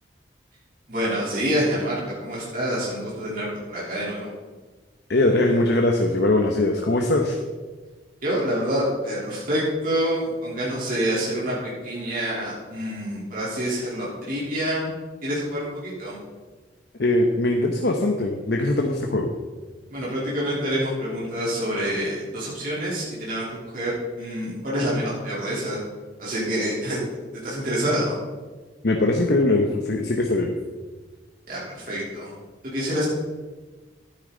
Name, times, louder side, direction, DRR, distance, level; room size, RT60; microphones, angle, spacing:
voice 1, 0.9-4.3 8.2-14.9 15.2-16.2 19.9-25.8 26.2-27.0 27.3-28.2 31.5-32.3 32.6-33.0, equal, 50° right, -7 dB, 3.5 m, -27 dB
voice 2, 5.1-7.4 17.0-19.3 28.8-30.5, left 2 dB, 65° left, 2 dB, 1.0 m, -21 dB
12.0 x 10.0 x 3.9 m, 1.3 s
head